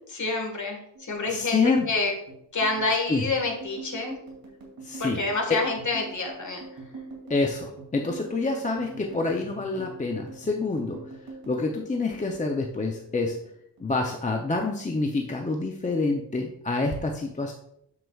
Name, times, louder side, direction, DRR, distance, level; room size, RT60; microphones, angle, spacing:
voice 1, 0.1-2.1 2.5-4.2 5.0-6.6, left 3 dB, 45° left, 2 dB, 1.6 m, -28 dB
sound 1, 0.9-13.5 13.8-14.8 15.1-15.5 15.8-16.5, right 3 dB, 55° right, 2.5 m, -45 dB
voice 2, 1.3-1.9 3.1-3.2 4.8-5.2 5.5-5.6 7.3-11.1 11.5-13.4 13.8-17.5, left 3 dB, 20° left, 2 dB, 0.5 m, -27 dB
7.7 x 6.6 x 2.3 m, 0.75 s
wide cardioid pair, 120°, 42 cm